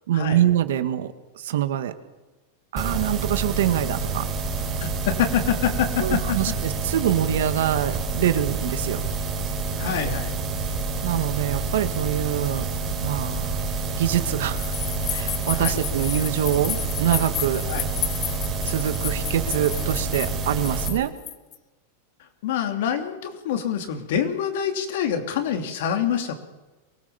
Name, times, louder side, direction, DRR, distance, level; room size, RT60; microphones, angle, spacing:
voice 1, 0.1-1.9 2.7-4.3 6.0-9.0 11.0-12.7 13.0-13.6 14.0-14.6 15.1-17.6 18.6-21.1, right 11 dB, 80° right, 10 dB, 1.8 m, -25 dB
sound 1, 2.8-20.9, right 4 dB, 20° right, 4.6 m, -28 dB
voice 2, 4.8-6.6 9.8-10.4 15.5-15.8 17.7-17.9 22.4-26.3, left 8 dB, 65° left, 7 dB, 3.0 m, -26 dB
sound 2, 14.6-21.6, left 11 dB, 30° left, 1.4 m, -32 dB
23.5 x 18.0 x 7.1 m, 1.1 s
supercardioid pair, 150°, 0 cm